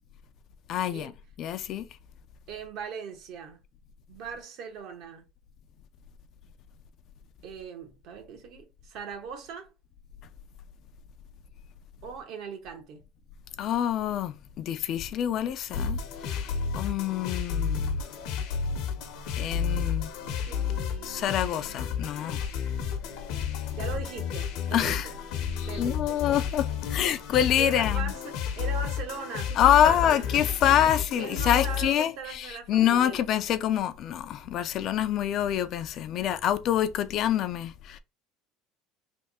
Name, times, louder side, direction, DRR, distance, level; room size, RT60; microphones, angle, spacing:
voice 1, 0.7-1.1 1.4-1.8 13.6-18.0 19.4-20.1 21.0-22.4 24.7-25.1 25.8-28.0 29.6-32.1 32.7-38.0, left 10 dB, 50° left, 0.4 m, -26 dB
voice 2, 2.5-3.6 4.1-5.3 7.4-9.7 12.0-13.0 20.3-21.8 23.7-25.2 25.7-26.2 27.6-30.6 31.1-33.2, right 6 dB, 60° right, 1.2 m, -40 dB
sound 1, 15.7-31.9, left 7 dB, 70° left, 0.9 m, -31 dB
3.4 x 2.7 x 4.1 m
cardioid pair, 130°, 0 cm